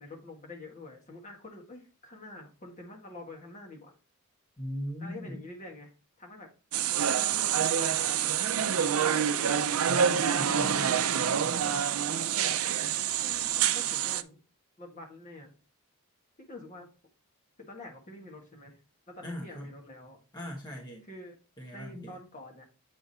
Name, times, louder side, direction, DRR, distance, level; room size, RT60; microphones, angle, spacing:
voice 1, 0.0-3.9 5.0-6.5 7.1-10.0 12.3-12.9 13.2-14.4 14.8-15.5 16.4-16.9 17.6-18.8 19.1-20.2 21.0-21.4 21.7-22.6, left 2 dB, 35° left, 1.7 m, -47 dB
voice 2, 4.6-5.4 9.9-11.8 19.2-19.7 20.3-21.0 21.6-22.1, equal, 20° left, 1.4 m, -40 dB
sound 1, 6.7-14.2, right 8 dB, 70° right, 0.5 m, -27 dB
8.1 x 3.6 x 4.1 m
head